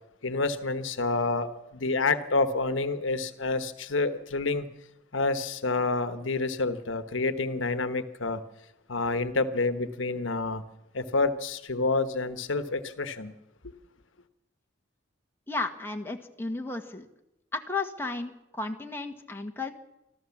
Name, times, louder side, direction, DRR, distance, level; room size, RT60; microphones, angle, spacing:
voice 1, 0.2-4.7 5.1-8.4 8.9-10.6 10.9-13.3, left 3 dB, 70° left, 1.2 m, -28 dB
voice 2, 15.5-17.1 17.5-19.7, left 3 dB, 10° left, 1.5 m, -33 dB
25.0 x 14.0 x 7.2 m
head